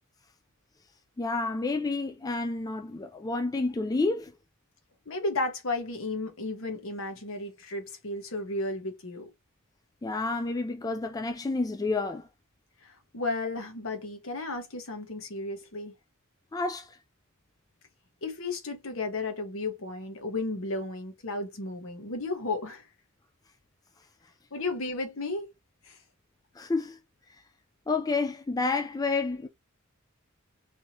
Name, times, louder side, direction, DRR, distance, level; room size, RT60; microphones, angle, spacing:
voice 1, 1.2-4.3 10.0-12.3 16.5-17.0 26.6-27.0 27.9-29.5, left 3 dB, 15° left, 0.3 m, -29 dB
voice 2, 5.1-9.3 12.8-15.9 18.2-22.8 24.5-25.5 25.9-26.0, left 2 dB, 65° left, 1.2 m, -33 dB
3.5 x 2.8 x 2.9 m
head